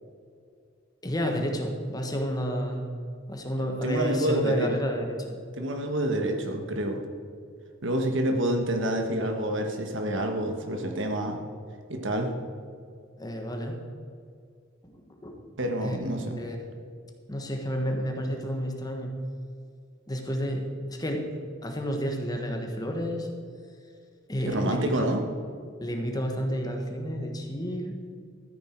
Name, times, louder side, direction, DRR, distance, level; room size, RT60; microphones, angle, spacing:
voice 1, 1.0-2.9 3.3-5.4 13.2-13.8 14.8-15.4 15.8-16.0 16.3-16.6 17.3-19.1 20.1-21.2 21.6-23.3 24.3-25.1 25.8-27.9, equal, 20° left, 3 dB, 1.3 m, -30 dB
voice 2, 3.8-4.7 5.6-7.0 7.8-11.4 11.9-12.3 15.6-16.4 24.4-25.2 25.6-25.7, right 1 dB, 65° right, 4 dB, 1.4 m, -28 dB
13.0 x 9.8 x 4.6 m, 2.2 s
head